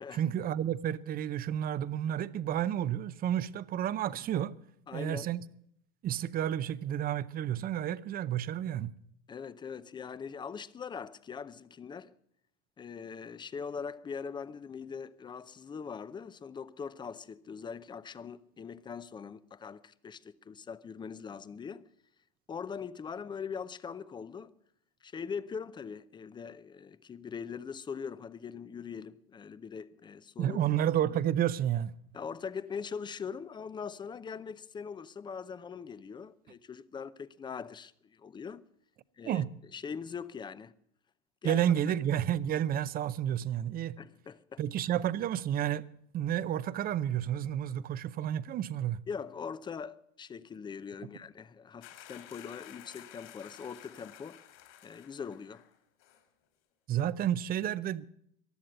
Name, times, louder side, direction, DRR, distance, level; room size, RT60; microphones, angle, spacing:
voice 1, 0.1-4.5 4.9-5.4 6.0-8.9 30.4-31.9 39.2-39.5 41.4-44.0 44.6-45.8 46.1-49.0 56.9-58.1, right 10 dB, 30° right, 0.6 m, -31 dB
voice 2, 4.9-5.3 9.3-12.1 12.8-21.8 22.5-24.5 25.0-30.6 32.1-38.6 39.2-39.4 39.7-40.7 41.4-41.6 44.0-44.6 49.1-54.4 54.8-55.7, left 6 dB, 15° left, 0.5 m, -41 dB
sound 1, 51.8-55.7 56.0-56.2, left 12 dB, 55° left, 2.8 m, -52 dB
15.5 x 11.0 x 7.8 m
supercardioid pair, 125°, 31 cm